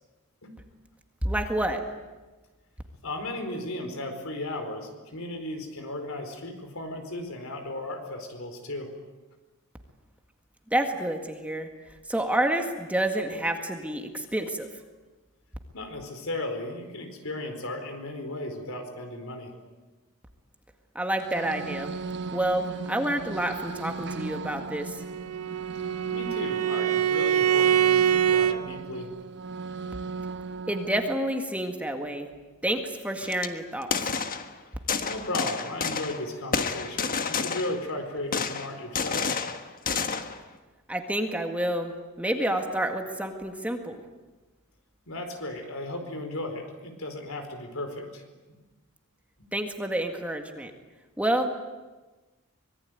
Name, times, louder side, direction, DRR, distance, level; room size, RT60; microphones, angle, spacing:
voice 1, 1.2-1.8 10.7-11.7 12.1-14.7 21.0-22.0 22.3-25.0 30.7-32.3 32.6-34.1 40.9-44.0 49.5-50.7 51.2-51.6, right 1 dB, 5° right, 4 dB, 1.9 m, -29 dB
voice 2, 3.0-8.9 15.7-19.5 26.1-29.1 35.0-39.3 45.1-48.6, left 1 dB, 70° left, 6 dB, 4.7 m, -35 dB
sound 1, 21.2-31.1, right 4 dB, 55° right, 1.2 m, -37 dB
Bowed string instrument, 25.0-28.6, right 9 dB, 75° right, 1.1 m, -24 dB
sound 2, 33.2-33.5 33.8-34.5 34.9-36.2 36.5-37.9 38.3-40.4, left 5 dB, 40° left, 1.4 m, -29 dB
25.0 x 22.0 x 9.3 m, 1.2 s
head